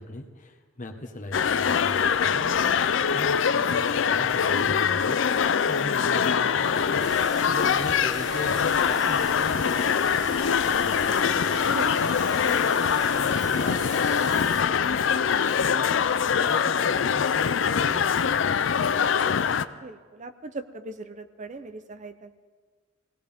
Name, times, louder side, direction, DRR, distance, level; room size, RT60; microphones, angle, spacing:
voice 1, 0.0-11.7 12.2-18.8, left 2 dB, 40° left, 4 dB, 1.4 m, -40 dB
sound 1, 1.3-19.7, left 7 dB, 70° left, 0.5 m, -23 dB
sound 2, 2.9-5.1 5.6-8.1, right 3 dB, 85° right, 2.6 m, -51 dB
sound 3, 7.0-14.6, right 1 dB, 20° right, 1.2 m, -39 dB
voice 2, 11.7-12.1 19.7-22.3, right 3 dB, 40° right, 9 dB, 0.6 m, -39 dB
22.0 x 17.0 x 3.6 m, 1.5 s
head